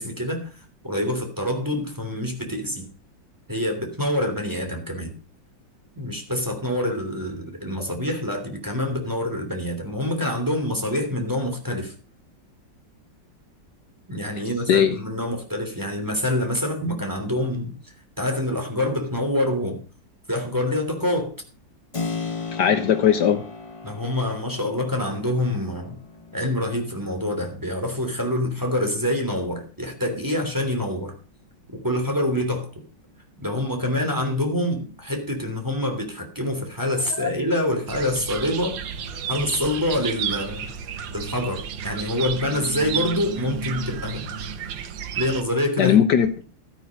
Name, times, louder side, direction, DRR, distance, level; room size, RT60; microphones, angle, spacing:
voice 1, 0.0-2.9 3.5-5.1 6.0-11.9 14.1-17.7 18.2-19.8 20.3-21.3 23.8-26.0 26.3-31.1 31.7-32.7 33.4-38.8 39.3-40.7 41.1-44.3 45.1-46.0, left 1 dB, 10° right, 3 dB, 3.1 m, -26 dB
voice 2, 14.7-15.0 22.5-23.4 37.2-37.3 45.8-46.4, left 8 dB, 65° left, 9 dB, 1.5 m, -19 dB
Keyboard (musical), 21.9-30.5, left 4 dB, 30° left, 0.6 m, -38 dB
sound 1, 37.9-45.4, right 8 dB, 70° right, 1.7 m, -32 dB
13.5 x 9.2 x 5.2 m, 0.36 s
omnidirectional pair, 2.1 m